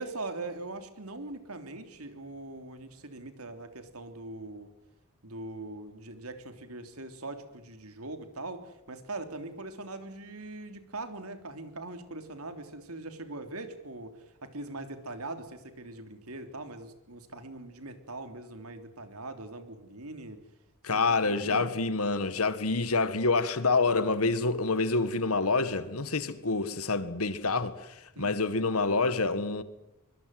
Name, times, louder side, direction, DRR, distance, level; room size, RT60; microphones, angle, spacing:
voice 1, 0.0-4.7 5.2-20.4 20.9-21.7 28.1-28.4, right 2 dB, 90° right, 3.4 m, -41 dB
voice 2, 20.8-29.6, left 3 dB, 80° left, 1.8 m, -27 dB
24.0 x 23.0 x 7.8 m
head